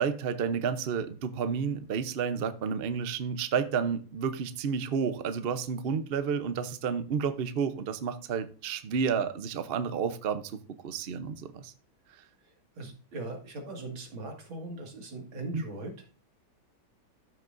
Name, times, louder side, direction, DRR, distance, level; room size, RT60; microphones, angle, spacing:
voice 1, 0.0-10.5 10.8-11.7 15.5-15.6, right 6 dB, 70° right, 0.5 m, -31 dB
voice 2, 12.8-16.1, right 2 dB, 90° right, 2.8 m, -40 dB
14.0 x 6.3 x 2.6 m
omnidirectional pair, 2.1 m